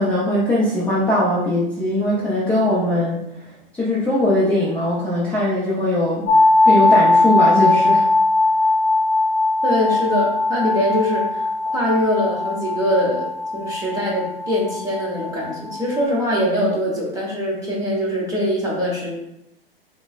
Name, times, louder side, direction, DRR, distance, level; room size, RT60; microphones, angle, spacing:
voice 1, 0.0-3.2 3.7-6.3 6.7-8.1, left 1 dB, 5° left, -9 dB, 0.6 m, -20 dB
sound 1, 6.3-16.0, left 2 dB, 30° left, 1.0 m, -19 dB
voice 2, 9.6-19.2, equal, 10° right, -4 dB, 1.1 m, -23 dB
5.9 x 2.2 x 2.4 m, 0.80 s
hypercardioid pair, 110°, 30 cm